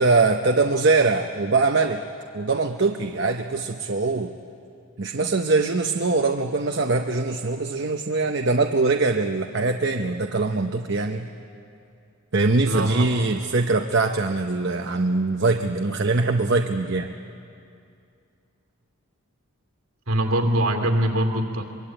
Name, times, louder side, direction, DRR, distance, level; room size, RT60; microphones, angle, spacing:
voice 1, 0.0-2.0 2.3-4.3 5.0-11.3 12.3-17.1, right 3 dB, 55° right, 4 dB, 0.8 m, -22 dB
voice 2, 12.6-13.1 20.1-21.7, right 1 dB, 70° right, 4 dB, 2.6 m, -22 dB
24.5 x 22.5 x 9.0 m, 2.5 s
head